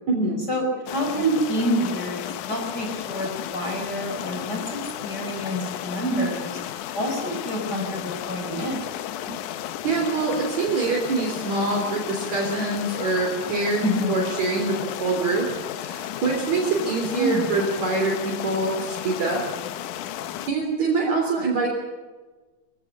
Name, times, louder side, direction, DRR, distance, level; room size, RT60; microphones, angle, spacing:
voice 1, 0.1-0.5 9.8-15.5 15.7-19.4 20.5-21.7, right 3 dB, 55° right, 0 dB, 4.7 m, -25 dB
sound 1, 0.9-20.5, left 11 dB, 70° left, 2.2 m, -33 dB
voice 2, 0.9-4.8 5.0-6.6 6.9-8.9 13.8-14.1 17.1-17.4 21.0-21.1, equal, 25° left, 2 dB, 5.1 m, -27 dB
24.0 x 16.5 x 8.6 m, 1.3 s
omnidirectional pair, 4.0 m